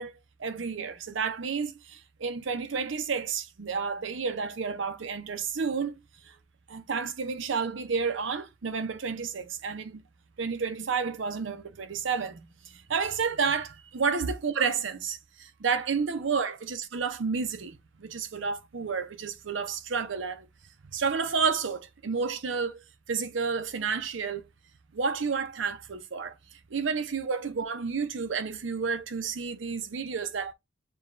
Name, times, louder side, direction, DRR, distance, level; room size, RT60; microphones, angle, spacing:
voice 1, 0.0-6.0 6.2-6.3 6.7-10.0 10.4-20.5 20.9-22.8 23.1-24.4 24.9-26.3 26.7-30.5, right 5 dB, 75° right, 0.6 m, -31 dB
6.8 x 2.3 x 2.4 m
head